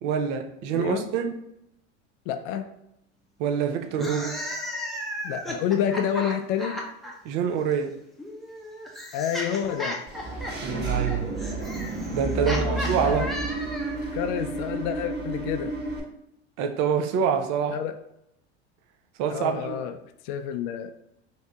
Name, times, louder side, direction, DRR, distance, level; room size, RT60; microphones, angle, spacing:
voice 1, 0.0-1.3 3.4-4.4 7.2-8.0 10.6-11.3 12.1-13.3 16.6-17.8 19.2-19.8, right 7 dB, 55° right, 5 dB, 0.6 m, -26 dB
voice 2, 0.7-1.1 2.3-2.7 5.2-6.8 9.1-10.0 12.4-13.3 14.1-15.8 17.7-17.9 19.3-20.0 20.2-20.9, left 9 dB, 65° left, 7 dB, 0.5 m, -29 dB
sound 1, 3.9-7.1 8.2-14.1, equal, ahead, 0.7 m, -35 dB
Engine / Mechanisms, 10.1-16.0, right 3 dB, 30° right, 1.2 m, -30 dB
2.7 x 2.7 x 3.5 m, 0.78 s
hypercardioid pair, 90°, 33 cm